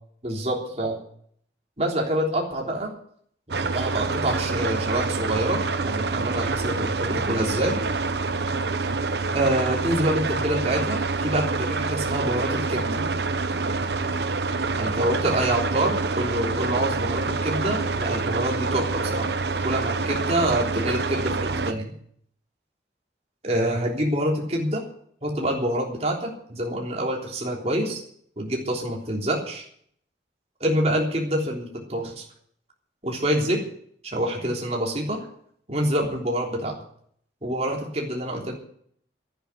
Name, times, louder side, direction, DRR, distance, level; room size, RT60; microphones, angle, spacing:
voice 1, 0.2-1.0 1.8-2.9 3.6-7.8 9.3-13.0 14.8-19.3 19.6-21.9 23.4-24.8 25.2-28.0 28.4-29.6 30.6-32.2 33.0-33.6 34.0-35.2 35.7-36.7 37.4-38.5, right 1 dB, 35° right, -1 dB, 3.5 m, -26 dB
sound 1, 3.5-21.7, right 3 dB, 65° right, 1.0 m, -27 dB
12.0 x 9.6 x 9.9 m, 0.63 s
head